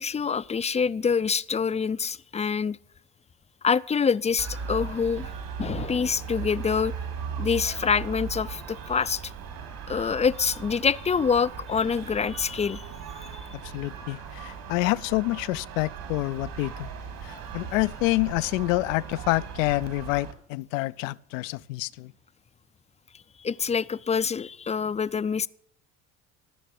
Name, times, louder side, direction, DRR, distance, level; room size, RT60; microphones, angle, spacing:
voice 1, 0.0-2.8 3.6-5.3 5.6-6.9 7.4-9.2 9.9-12.9 13.2-13.5 23.4-25.5, left 6 dB, 20° left, 0.4 m, -26 dB
sound 1, 4.4-20.3, right 6 dB, 60° right, 3.1 m, -38 dB
voice 2, 13.7-16.9 17.2-22.1, left 19 dB, 80° left, 0.6 m, -27 dB
15.0 x 6.5 x 9.4 m
hypercardioid pair, 70°, 38 cm